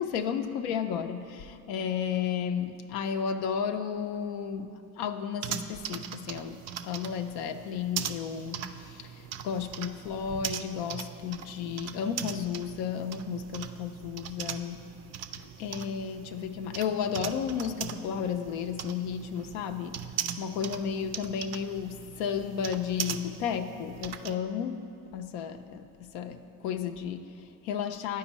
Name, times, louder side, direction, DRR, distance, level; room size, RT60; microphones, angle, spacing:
voice 1, 0.0-14.9 15.4-20.0 20.4-24.8 25.1-28.2, left 7 dB, 70° left, 7 dB, 0.5 m, -33 dB
sound 1, 5.4-24.3, right 9 dB, 40° right, 0.4 m, -40 dB
11.0 x 4.6 x 2.9 m, 2.6 s
hypercardioid pair, 60°, 42 cm